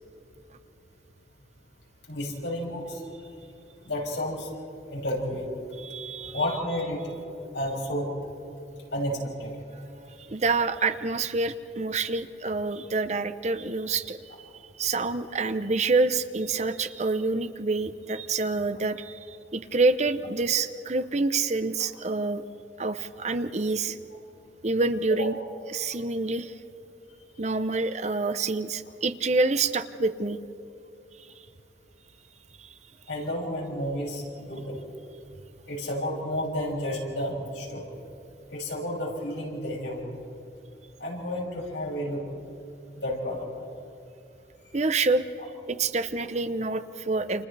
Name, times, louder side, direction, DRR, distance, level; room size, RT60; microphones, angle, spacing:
voice 1, 2.1-3.0 3.8-4.5 4.9-5.5 6.2-7.1 7.5-8.1 8.9-9.5 25.2-25.3 33.1-34.8 35.7-37.9 38.5-40.1 41.0-42.2 43.0-43.5, left 1 dB, 85° left, -3 dB, 6.8 m, -31 dB
voice 2, 5.8-6.4 10.3-14.5 14.8-19.2 19.5-22.4 22.8-24.0 24.6-25.4 25.7-26.5 27.4-30.4 32.6-32.7 44.7-45.2 45.7-47.5, right 3 dB, 35° right, 10 dB, 0.7 m, -27 dB
29.5 x 28.5 x 3.4 m, 2.8 s
head